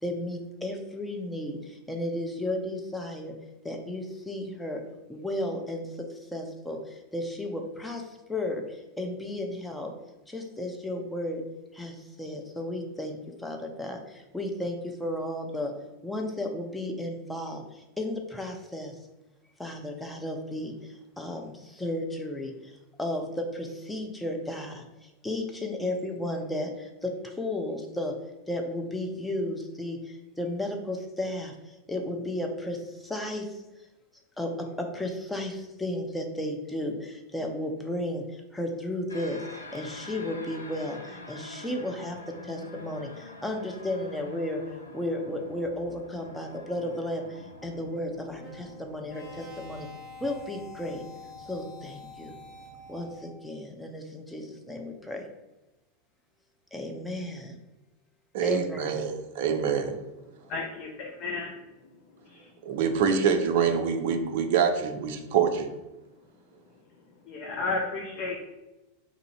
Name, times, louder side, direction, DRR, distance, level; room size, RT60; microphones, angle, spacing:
voice 1, 0.0-3.4 3.6-4.8 5.1-9.9 10.3-11.4 11.7-19.0 19.6-22.7 23.0-28.2 28.5-33.6 34.4-49.9 50.2-51.0 51.4-52.3 52.9-55.3 56.7-57.6 58.4-59.0, left 1 dB, 5° left, 2 dB, 0.6 m, -34 dB
sound 1, 39.1-53.1, left 2 dB, 90° left, 0.5 m, -47 dB
sound 2, 48.3-53.5, left 3 dB, 25° left, 1.4 m, -47 dB
voice 2, 58.3-60.0 62.6-65.7, right 7 dB, 60° right, 6 dB, 0.5 m, -25 dB
voice 3, 60.5-61.5 62.2-62.5 67.2-68.4, left 3 dB, 45° left, 0 dB, 0.6 m, -33 dB
2.7 x 2.6 x 4.3 m, 1.0 s
figure-of-eight pair, 90°, 0 cm